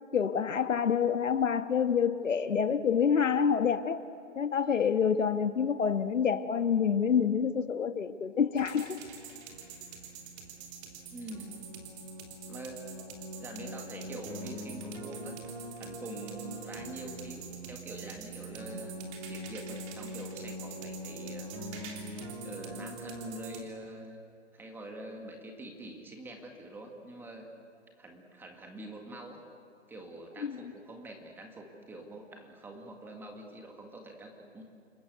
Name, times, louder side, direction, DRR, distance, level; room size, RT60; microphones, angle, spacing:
voice 1, 0.1-4.0 4.3-9.0 30.4-30.6, left 7 dB, 85° left, 1.5 m, -27 dB
sound 1, 8.6-23.6, right 1 dB, 25° right, 3.1 m, -42 dB
voice 2, 11.1-11.6 12.4-12.8 13.4-15.4 15.8-21.9 22.4-24.2 24.5-27.5 28.0-29.4 29.9-34.6, right 1 dB, 5° right, 1.7 m, -45 dB
29.0 x 21.0 x 8.1 m
hypercardioid pair, 155°, 37 cm